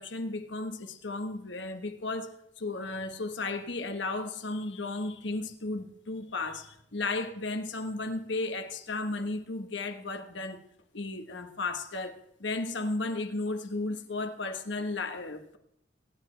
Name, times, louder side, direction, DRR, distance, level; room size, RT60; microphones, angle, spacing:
voice 1, 0.0-10.6 10.9-15.6, left 2 dB, 75° left, 1.3 m, -34 dB
25.5 x 10.0 x 3.4 m
head